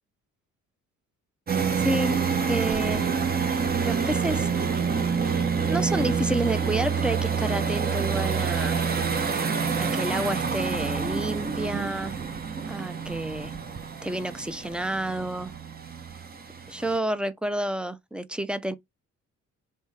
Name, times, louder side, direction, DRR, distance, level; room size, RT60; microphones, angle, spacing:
sound 1, 1.5-17.0, right 6 dB, 30° right, 0.8 m, -27 dB
voice 1, 1.7-3.1 3.9-4.5 5.7-8.8 9.8-12.2 12.7-13.5 14.0-15.5 16.7-18.7, right 1 dB, 5° right, 0.6 m, -30 dB
3.6 x 2.7 x 4.2 m
cardioid pair, 90°, 30 cm